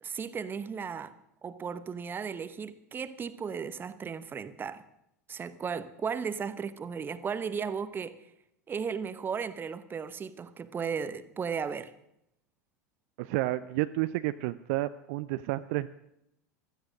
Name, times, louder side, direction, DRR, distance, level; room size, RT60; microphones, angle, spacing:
voice 1, 0.0-1.1 1.4-4.8 5.3-8.2 8.7-11.9, right 6 dB, 25° right, 1.0 m, -35 dB
voice 2, 13.2-15.9, right 17 dB, 55° right, 0.5 m, -31 dB
16.0 x 13.0 x 6.4 m
figure-of-eight pair, 80°, 9 cm